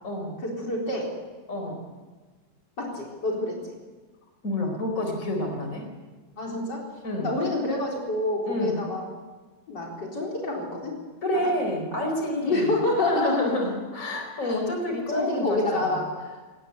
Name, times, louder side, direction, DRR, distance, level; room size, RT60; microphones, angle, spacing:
voice 1, 0.4-1.2 2.8-3.8 6.4-6.9 7.2-9.0 9.7-11.0 11.4-11.5 12.4-13.5 14.4-14.6 15.1-16.4, left 2 dB, 70° left, -2 dB, 4.7 m, -28 dB
voice 2, 1.5-1.8 4.4-5.9 7.0-7.4 8.4-8.8 11.2-12.7 13.1-16.0, left 1 dB, 45° left, 3 dB, 4.8 m, -28 dB
21.5 x 18.5 x 9.2 m, 1.3 s
omnidirectional pair, 1.9 m